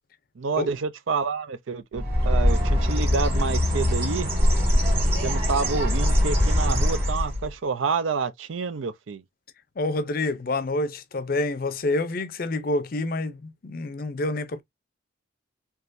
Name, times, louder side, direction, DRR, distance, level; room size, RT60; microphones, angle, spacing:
voice 1, 0.4-4.3 5.2-9.2, right 5 dB, 85° right, 0.5 m, -28 dB
Bird, 1.9-7.5, left 1 dB, 30° right, 1.9 m, -22 dB
voice 2, 9.8-14.6, left 2 dB, 50° left, 0.5 m, -27 dB
3.6 x 2.9 x 2.5 m
head